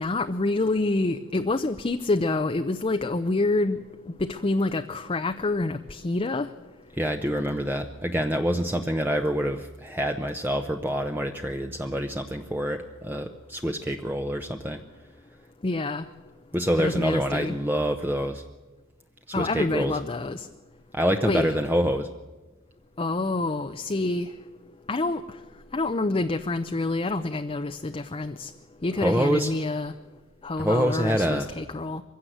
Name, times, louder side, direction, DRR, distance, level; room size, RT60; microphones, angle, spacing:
voice 1, 0.0-3.8 4.2-6.5 15.6-16.0 16.8-17.5 19.3-20.5 21.2-21.5 23.0-24.3 24.9-25.2 25.7-28.5 28.8-29.9 30.4-32.0, left 2 dB, 25° left, 7 dB, 0.6 m, -27 dB
voice 2, 6.9-14.8 16.5-18.4 19.4-19.9 20.9-22.1 29.0-29.5 30.6-31.5, equal, 10° right, 5 dB, 0.7 m, -26 dB
22.5 x 16.0 x 7.9 m, 1.2 s
head